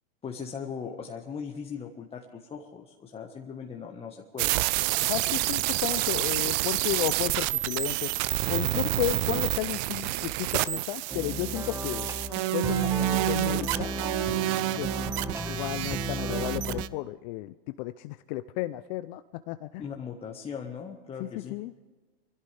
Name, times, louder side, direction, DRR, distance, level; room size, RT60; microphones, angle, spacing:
voice 1, 0.2-4.6 19.8-21.6, left 6 dB, 20° left, 1 dB, 1.4 m, -39 dB
sound 1, 4.4-16.9, right 17 dB, 45° right, 0.7 m, -28 dB
voice 2, 5.0-8.1 8.5-12.1 12.5-13.9 14.7-15.1 15.5-19.9 21.2-21.7, left 16 dB, 45° left, 12 dB, 0.6 m, -33 dB
sound 2, 11.1-16.8, right 1 dB, 10° right, 1.6 m, -34 dB
24.5 x 16.0 x 3.4 m, 1.3 s
hypercardioid pair, 110°, 31 cm